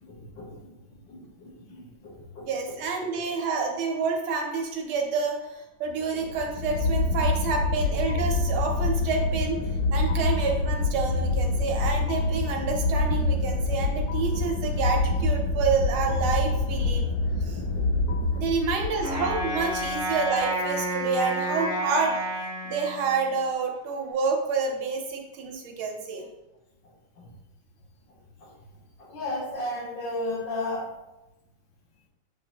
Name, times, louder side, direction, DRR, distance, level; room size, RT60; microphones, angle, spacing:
voice 1, 0.0-0.7 1.1-2.8 6.1-6.2 17.5-18.5 27.2-27.3 28.4-28.5 29.0-30.9, left 1 dB, 65° left, -1 dB, 1.5 m, -35 dB
voice 2, 2.4-9.6 9.9-17.1 17.4-17.6 18.3-22.2 22.6-26.3, right 5 dB, 80° right, 1 dB, 1.6 m, -28 dB
sound 1, 6.2-20.4, left 2 dB, 80° left, 0.9 m, -26 dB
Wind instrument woodwind instrument, 19.0-23.4, right 1 dB, 10° right, 0.7 m, -30 dB
7.3 x 2.6 x 2.8 m, 0.98 s
omnidirectional pair, 2.3 m